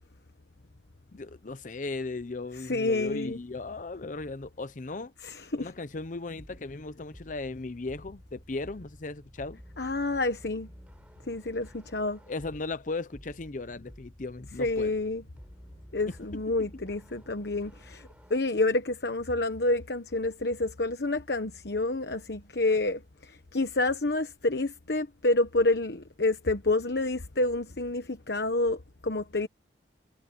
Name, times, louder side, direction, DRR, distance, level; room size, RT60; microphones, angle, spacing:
voice 1, 1.1-5.1 5.6-9.6 12.3-14.9 16.3-16.7, left 3 dB, 45° left, 0.7 m, -37 dB
voice 2, 2.7-3.4 5.2-5.7 9.8-10.7 11.3-12.2 14.6-15.2 15.9-29.5, left 2 dB, 65° left, 1.2 m, -28 dB
sound 1, 6.4-18.4, equal, 5° right, 7.6 m, -52 dB
head